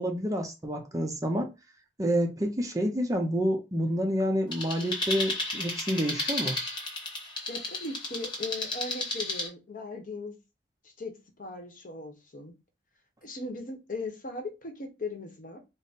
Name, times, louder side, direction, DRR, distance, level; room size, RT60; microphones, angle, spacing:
voice 1, 0.0-1.5 2.0-6.6, equal, 20° right, 0.6 m, -28 dB
sound 1, 4.5-9.5, left 2 dB, 25° left, 1.1 m, -33 dB
voice 2, 7.5-10.3 10.8-11.1 11.4-12.5 13.2-15.6, left 2 dB, 50° left, 0.9 m, -38 dB
3.6 x 2.0 x 4.0 m
head